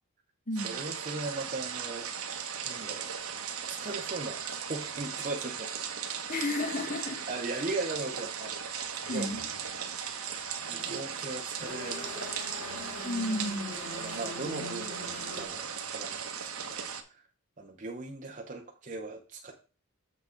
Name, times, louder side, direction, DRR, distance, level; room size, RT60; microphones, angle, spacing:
voice 1, 0.6-2.1 2.6-3.1 3.7-5.7 7.3-9.3 10.7-12.9 13.9-17.2 17.6-19.5, right 3 dB, 35° right, 0.7 m, -39 dB
sound 1, 0.6-17.0, right 7 dB, 80° right, 1.0 m, -37 dB
voice 2, 6.3-7.2 9.1-9.4 13.0-13.8, left 2 dB, 35° left, 1.4 m, -32 dB
sound 2, 8.4-8.5 9.0-11.1 11.5-15.4, left 3 dB, 65° left, 2.0 m, -44 dB
7.0 x 5.8 x 3.8 m
head